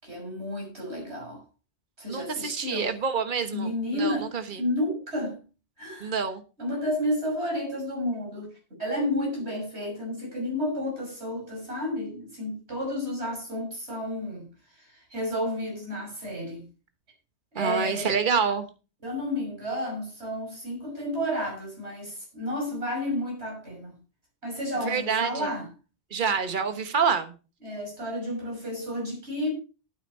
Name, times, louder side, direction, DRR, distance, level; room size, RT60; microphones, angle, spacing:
voice 1, 0.0-1.4 2.0-2.9 3.5-4.3 4.6-5.4 5.8-6.1 6.6-8.5 8.8-14.5 14.8-16.6 17.5-18.1 19.0-23.9 24.4-25.7 27.6-29.5, left 1 dB, 75° right, 0 dB, 6.6 m, -31 dB
voice 2, 2.1-4.6 6.0-6.4 17.5-18.7 24.8-25.5 26.1-27.3, right 6 dB, 50° right, 8 dB, 1.4 m, -27 dB
12.5 x 9.1 x 4.3 m, 0.33 s
omnidirectional pair, 1.1 m